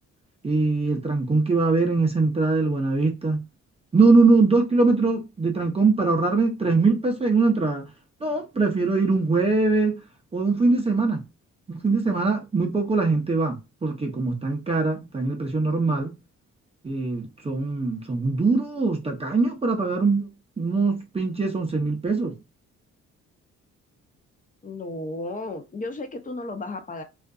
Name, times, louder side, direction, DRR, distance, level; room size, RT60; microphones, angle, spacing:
voice 1, 0.4-3.4 3.9-7.8 8.2-9.9 10.3-11.2 11.7-16.1 16.8-20.3 20.6-22.3, right 3 dB, 20° right, 0.6 m, -22 dB
voice 2, 24.6-27.0, left 2 dB, 25° left, 0.6 m, -33 dB
2.5 x 2.4 x 2.3 m
cardioid pair, 90°, 30 cm